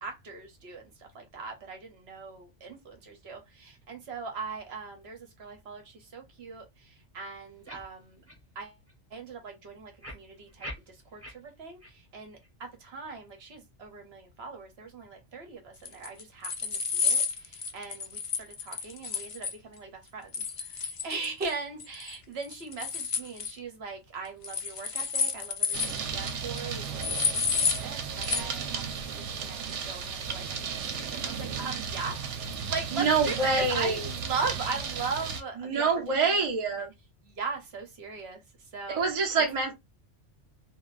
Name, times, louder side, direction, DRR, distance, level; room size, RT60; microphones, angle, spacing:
voice 1, 0.0-8.2 8.5-8.8 9.1-36.4 36.8-36.9 37.2-38.4 38.7-39.0 39.3-39.4, right 4 dB, 65° right, 1.1 m, -39 dB
sound 1, 7.7-7.8 8.3-8.4 8.9-9.0 10.0-11.3 11.8-11.9 12.4-12.5, equal, 15° right, 1.1 m, -42 dB
sound 2, 15.9-19.5 20.3-21.5 21.8-22.1 22.4-23.5 24.4-26.0 26.3-26.4 26.6-26.7 27.0-27.8 28.2-28.4, left 5 dB, 65° left, 0.3 m, -30 dB
sound 3, 25.7-35.4, right 6 dB, 85° right, 1.0 m, -35 dB
voice 2, 32.9-34.0 35.6-36.9 38.9-39.7, right 4 dB, 35° right, 0.8 m, -26 dB
3.5 x 2.2 x 2.5 m
omnidirectional pair, 1.2 m